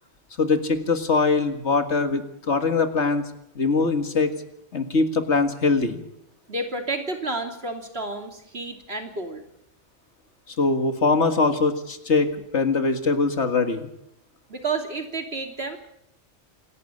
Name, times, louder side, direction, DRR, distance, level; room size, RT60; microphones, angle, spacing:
voice 1, 0.4-3.3 3.6-4.3 4.7-6.0 10.5-13.9, left 4 dB, 65° left, 8 dB, 2.1 m, -22 dB
voice 2, 6.5-9.4 14.5-15.8, right 3 dB, 55° right, 4 dB, 3.2 m, -30 dB
27.0 x 12.0 x 9.8 m, 0.78 s
omnidirectional pair, 1.3 m